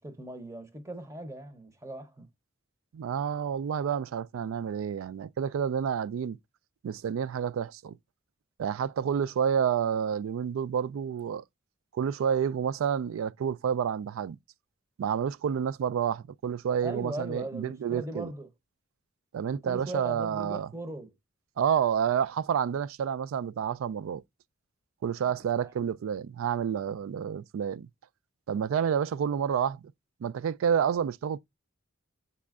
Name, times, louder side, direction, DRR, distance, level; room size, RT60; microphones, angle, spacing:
voice 1, 0.0-2.3 16.8-18.5 19.5-21.1 25.2-25.7, right 1 dB, 15° right, 0.7 m, -39 dB
voice 2, 2.9-6.4 6.8-8.0 8.6-11.4 11.9-14.4 15.0-18.3 19.3-20.7 21.6-24.2 25.0-27.9 28.5-29.8 30.2-31.4, right 8 dB, 70° right, 0.3 m, -29 dB
5.2 x 4.2 x 2.3 m
head